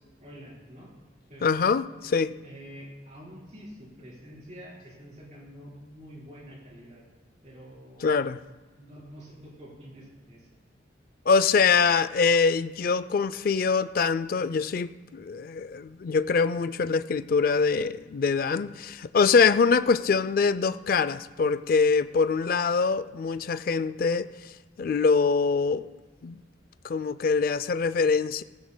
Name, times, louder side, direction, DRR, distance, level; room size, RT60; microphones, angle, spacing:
voice 1, 0.2-0.9 1.3-1.4 2.0-2.1 2.4-7.0 7.4-8.2 8.8-10.5, equal, 40° right, 4.2 m, -47 dB
voice 2, 1.4-2.3 8.0-8.4 11.3-24.3 24.8-25.9 26.2-26.4 26.8-28.4, left 5 dB, 50° left, 0.3 m, -24 dB
17.5 x 15.5 x 2.2 m
head